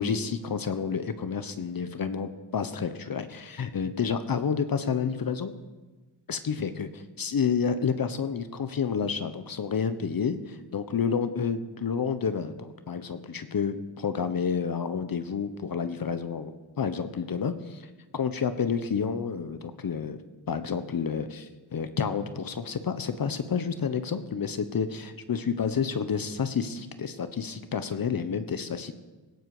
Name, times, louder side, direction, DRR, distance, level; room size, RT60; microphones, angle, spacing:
voice 1, 0.0-5.5 6.3-16.5 16.8-20.2 20.5-28.9, left 6 dB, 50° left, 10 dB, 1.2 m, -30 dB
17.5 x 15.0 x 5.0 m, 1.2 s
cardioid pair, 75°, 46 cm